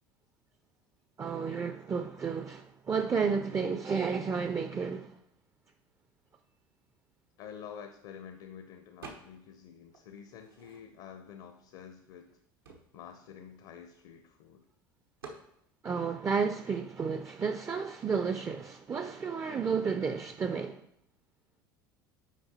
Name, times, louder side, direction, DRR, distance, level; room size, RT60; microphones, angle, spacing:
voice 1, 1.2-5.2 15.8-20.9, right 5 dB, 25° right, 0.4 m, -32 dB
voice 2, 7.4-12.4 12.9-14.7, left 8 dB, 60° left, 0.6 m, -48 dB
sound 1, 9.0-9.6 9.9-11.2 11.8-11.9 12.1-14.4 15.2-15.5, right 4 dB, 90° right, 1.0 m, -50 dB
6.1 x 4.6 x 4.2 m
hypercardioid pair, 75°, 12 cm